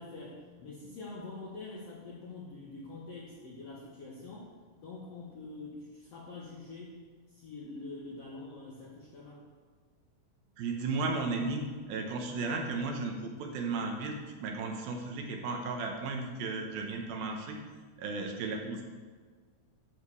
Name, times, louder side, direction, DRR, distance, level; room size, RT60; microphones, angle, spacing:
voice 1, 0.0-4.5 4.8-7.0 7.3-9.4, left 3 dB, 80° left, -5 dB, 1.4 m, -45 dB
voice 2, 10.6-11.6 11.9-17.6 18.0-18.8, right 3 dB, 75° right, 3 dB, 2.4 m, -34 dB
11.5 x 5.2 x 6.9 m, 1.5 s
omnidirectional pair, 5.2 m